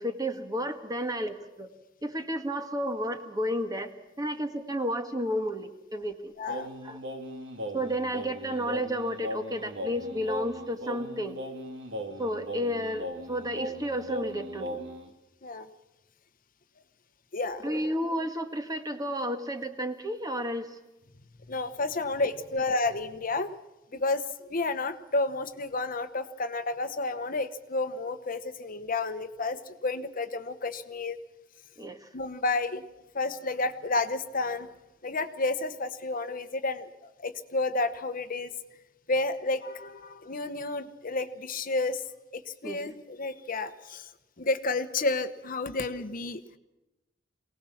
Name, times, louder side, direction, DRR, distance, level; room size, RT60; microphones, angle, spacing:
voice 1, 0.0-1.7 2.0-3.9 4.2-6.3 6.8-7.0 7.7-11.4 12.2-14.8 17.6-20.8 23.9-24.0 31.8-32.1 42.6-42.9, equal, 20° right, 7 dB, 1.7 m, -32 dB
voice 2, 6.4-6.7 15.4-15.7 17.3-17.6 21.5-23.5 23.9-31.2 32.1-32.8 33.1-34.7 35.0-38.5 39.1-42.0 42.3-44.1 44.4-46.4, left 3 dB, 45° left, 10 dB, 1.1 m, -31 dB
Singing, 6.5-15.1, equal, 65° right, 2.5 m, -38 dB
23.5 x 18.5 x 7.3 m, 0.99 s
head